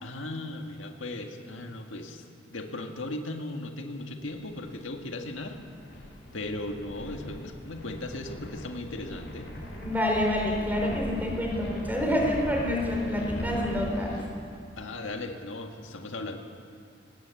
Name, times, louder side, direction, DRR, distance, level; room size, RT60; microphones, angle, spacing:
voice 1, 0.0-2.2 2.5-5.6 6.3-9.5 14.8-16.4, left 2 dB, 90° left, 4 dB, 1.8 m, -37 dB
sound 1, 4.2-14.2, equal, 65° left, 5.6 m, -39 dB
voice 2, 9.8-14.2, left 1 dB, 10° right, 0 dB, 4.1 m, -27 dB
20.5 x 18.0 x 8.3 m, 2.3 s
head